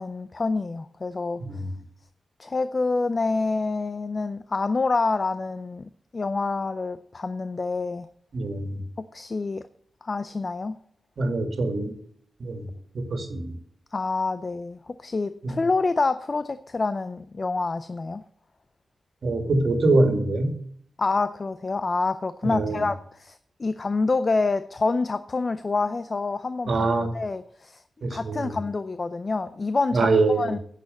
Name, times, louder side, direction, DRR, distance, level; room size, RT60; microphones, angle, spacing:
voice 1, 0.0-1.4 2.4-8.1 9.0-9.6 10.0-10.7 13.9-18.2 21.0-26.9 27.1-27.8 28.1-30.1 30.4-30.6, left 3 dB, 30° left, 12 dB, 0.4 m, -27 dB
voice 2, 8.3-8.8 11.2-11.9 12.4-12.7 12.9-13.6 15.4-15.6 19.2-20.6 22.4-22.8 26.7-27.1 28.0-28.6 29.9-30.5, right 2 dB, 50° right, 5 dB, 2.1 m, -24 dB
11.0 x 6.6 x 7.7 m, 0.64 s
wide cardioid pair, 165°, 0 cm